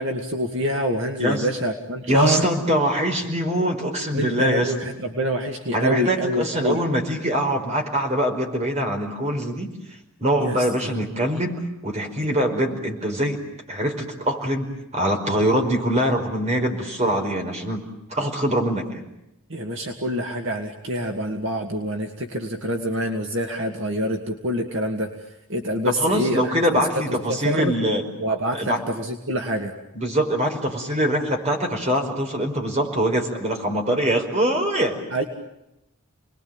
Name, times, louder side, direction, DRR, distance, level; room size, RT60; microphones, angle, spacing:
voice 1, 0.0-2.5 4.1-6.8 10.4-10.9 19.5-25.1 25.5-26.5 27.3-27.7 28.2-29.7 35.1-35.2, equal, 60° right, 3 dB, 2.4 m, -26 dB
voice 2, 2.1-4.7 5.7-9.7 10.2-13.4 13.7-17.8 18.1-19.0 25.9-28.0 28.5-28.8 29.9-35.0, equal, 30° right, 3 dB, 5.0 m, -23 dB
30.0 x 21.5 x 9.0 m, 0.88 s
head